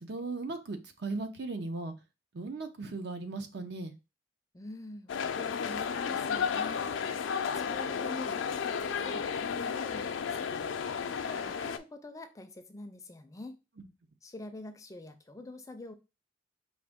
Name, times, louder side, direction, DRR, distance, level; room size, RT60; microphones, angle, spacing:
voice 1, 0.0-1.9 2.3-4.0, right 3 dB, 65° right, 6 dB, 0.7 m, -37 dB
voice 2, 4.5-7.3 7.7-13.6 14.2-15.9, left 2 dB, 15° left, 8 dB, 0.4 m, -46 dB
sound 1, 5.1-11.8, left 6 dB, 85° left, 0.4 m, -33 dB
5.0 x 2.5 x 3.6 m, 0.28 s
head